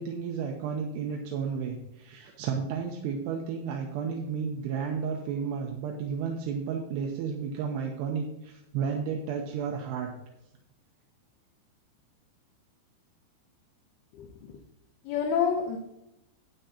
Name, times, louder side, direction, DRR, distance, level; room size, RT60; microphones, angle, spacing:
voice 1, 0.0-10.1, right 6 dB, 80° right, 2 dB, 2.9 m, -32 dB
voice 2, 14.1-14.6 15.0-15.8, left 7 dB, 75° left, 3 dB, 2.7 m, -28 dB
12.5 x 9.3 x 2.8 m, 0.87 s
omnidirectional pair, 4.8 m